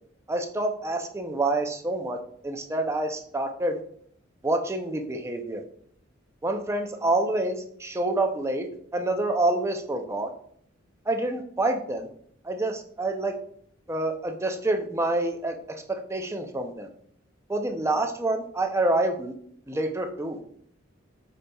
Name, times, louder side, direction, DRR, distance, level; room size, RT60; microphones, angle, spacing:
voice 1, 0.3-2.2 2.4-3.8 4.4-5.6 6.4-10.3 11.1-12.1 12.4-13.4 13.9-16.9 17.5-19.3 19.7-20.4, right 2 dB, 15° right, 4 dB, 0.4 m, -27 dB
5.0 x 4.0 x 2.2 m, 0.63 s
head